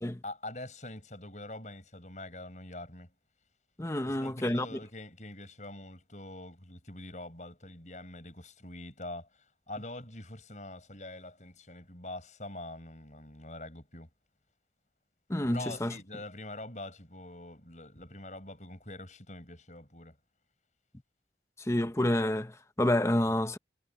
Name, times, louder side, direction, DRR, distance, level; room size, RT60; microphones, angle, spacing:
voice 1, 0.2-3.1 4.0-9.3 9.7-14.1 15.5-20.2, left 2 dB, 45° left, 7.0 m, -44 dB
voice 2, 3.8-4.8 15.3-15.9 21.6-23.6, left 1 dB, 15° left, 0.8 m, -29 dB
head